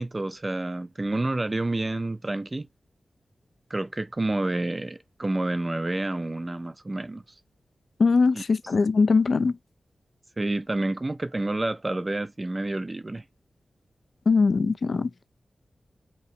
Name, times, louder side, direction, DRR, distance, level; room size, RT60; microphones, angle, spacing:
voice 1, 0.0-2.7 3.7-7.2 8.3-8.4 10.4-13.2, right 2 dB, 20° right, 0.4 m, -29 dB
voice 2, 8.0-9.5 14.3-15.1, left 4 dB, 55° left, 0.4 m, -21 dB
5.3 x 2.9 x 3.1 m
wide cardioid pair, 145°, 0 cm